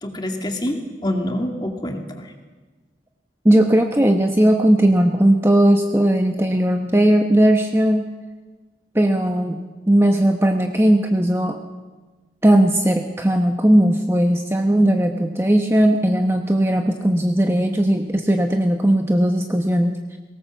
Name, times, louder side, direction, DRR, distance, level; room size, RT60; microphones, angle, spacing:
voice 1, 0.0-2.3, left 1 dB, 25° left, 3 dB, 2.4 m, -26 dB
voice 2, 3.4-8.0 8.9-9.6 9.9-11.6 12.4-19.9, right 1 dB, 15° right, 4 dB, 1.0 m, -17 dB
22.5 x 18.5 x 7.2 m, 1.3 s
head